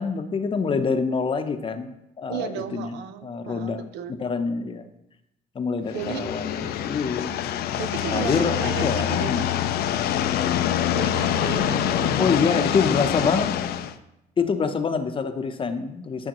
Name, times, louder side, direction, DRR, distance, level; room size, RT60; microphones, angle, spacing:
voice 1, 0.0-1.9 2.2-3.0 3.2-3.8 4.1-4.8 5.5-7.3 8.1-9.4 12.2-13.5 14.4-16.3, left 5 dB, 30° left, 8 dB, 0.7 m, -26 dB
voice 2, 2.3-4.2 5.9-6.2 7.8-9.5 10.9-12.6, right 9 dB, 85° right, 10 dB, 0.7 m, -34 dB
sound 1, 5.9-13.9, left 10 dB, 70° left, 0.5 m, -25 dB
11.5 x 6.5 x 3.0 m, 0.85 s
cardioid pair, 110°, 17 cm